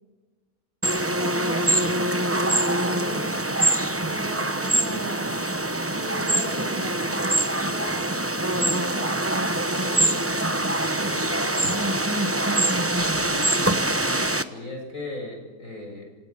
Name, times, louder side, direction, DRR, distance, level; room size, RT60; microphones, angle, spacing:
sound 1, 0.8-14.4, right 1 dB, 10° right, 0.7 m, -24 dB
voice 1, 1.2-3.5 4.0-5.3 5.9-12.1, right 1 dB, 55° right, -1 dB, 4.1 m, -39 dB
voice 2, 13.0-13.7 14.5-16.2, left 2 dB, 50° left, 2 dB, 7.5 m, -37 dB
28.0 x 26.0 x 5.5 m, 1.3 s
omnidirectional pair, 1.8 m